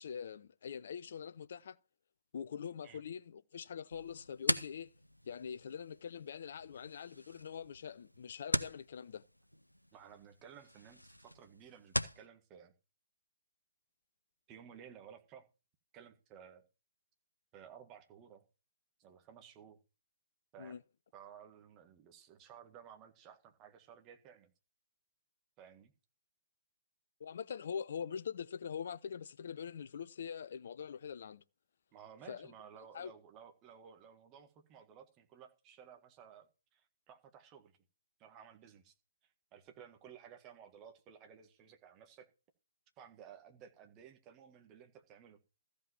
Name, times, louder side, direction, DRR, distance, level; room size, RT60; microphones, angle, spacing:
voice 1, 0.0-1.8 2.3-4.9 5.3-9.2 20.6-20.8 27.2-31.4 32.3-32.5 32.9-33.1, left 7 dB, 50° left, 0.5 m, -43 dB
sound 1, 3.9-12.2, equal, 90° left, 0.6 m, -41 dB
voice 2, 9.9-12.7 14.5-15.5 15.9-16.6 17.5-18.4 19.0-19.8 20.5-20.8 21.1-24.5 25.6-25.9 31.9-37.8 38.2-38.9 39.2-42.3 43.0-45.4, right 8 dB, 25° right, 1.7 m, -56 dB
14.0 x 5.2 x 7.0 m
figure-of-eight pair, 125°, 0 cm